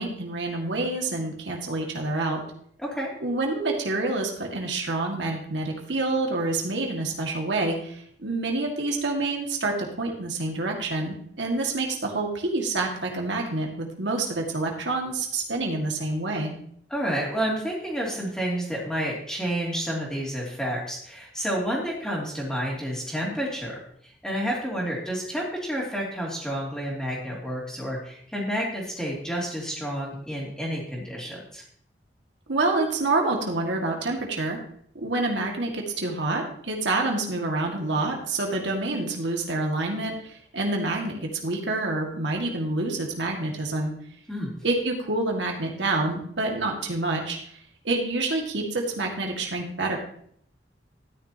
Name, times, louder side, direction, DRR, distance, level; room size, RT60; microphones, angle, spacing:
voice 1, 0.0-2.4 3.2-16.5 32.5-34.6 35.0-43.9 44.6-47.6 47.8-50.0, right 2 dB, 85° right, 1 dB, 2.0 m, -27 dB
voice 2, 16.9-23.8 24.2-31.6 44.3-44.5, equal, 5° left, -4 dB, 2.7 m, -30 dB
13.0 x 10.0 x 2.9 m, 0.65 s
head